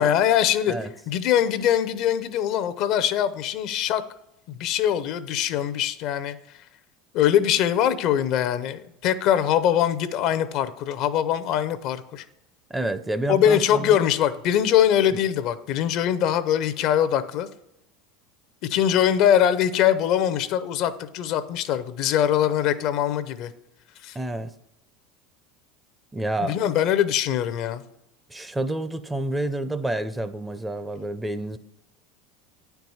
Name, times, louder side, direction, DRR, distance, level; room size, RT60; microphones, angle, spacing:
voice 1, 0.0-0.7 1.1-4.0 4.5-6.4 7.1-12.2 13.3-17.5 18.7-23.5 24.0-24.2 26.5-27.8, left 10 dB, 60° left, 0.6 m, -22 dB
voice 2, 12.7-14.0 24.1-24.5 26.1-26.6 28.3-31.6, right 2 dB, 10° right, 0.5 m, -29 dB
9.0 x 4.6 x 5.5 m
supercardioid pair, 105°, 0 cm